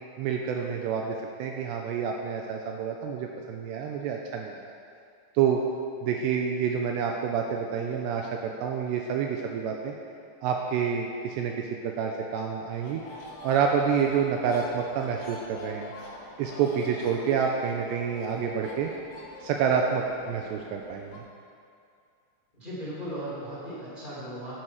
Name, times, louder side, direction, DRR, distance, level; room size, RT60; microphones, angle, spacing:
voice 1, 0.2-4.5 5.4-5.6 6.0-9.9 10.4-13.0 13.4-15.9 16.4-18.9 19.4-21.2, right 7 dB, 85° right, 1 dB, 2.6 m, -28 dB
sound 1, 12.7-21.2, left 2 dB, 55° left, 2.3 m, -45 dB
voice 2, 22.6-24.5, right 1 dB, 15° left, -8 dB, 2.0 m, -37 dB
11.0 x 10.0 x 4.7 m, 2.4 s
omnidirectional pair, 5.3 m